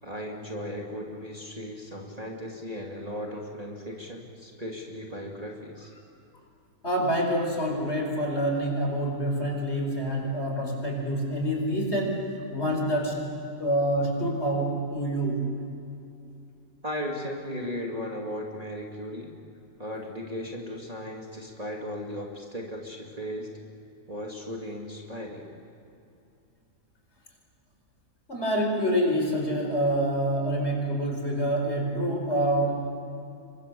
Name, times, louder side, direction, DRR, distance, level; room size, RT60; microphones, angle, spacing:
voice 1, 0.0-5.9 16.8-19.3 19.8-23.5 24.1-25.5, equal, 25° right, -2 dB, 2.7 m, -36 dB
voice 2, 6.8-13.3 13.6-15.4 28.3-32.9, equal, 45° left, 1 dB, 5.0 m, -27 dB
28.5 x 24.0 x 7.1 m, 2.7 s
omnidirectional pair, 1.6 m